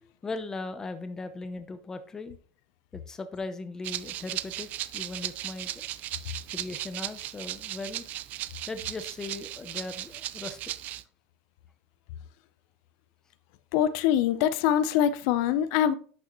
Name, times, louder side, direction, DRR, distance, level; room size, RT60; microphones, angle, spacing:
voice 1, 0.0-2.4 2.9-4.7 4.9-5.8 6.5-8.1 8.7-10.7, left 3 dB, 15° left, 9 dB, 0.6 m, -38 dB
Rattle (instrument), 3.8-11.0, right 14 dB, 40° right, 0.4 m, -37 dB
voice 2, 13.7-15.9, left 10 dB, 60° left, 13 dB, 0.6 m, -24 dB
11.0 x 6.3 x 3.0 m, 0.43 s
supercardioid pair, 155°, 4 cm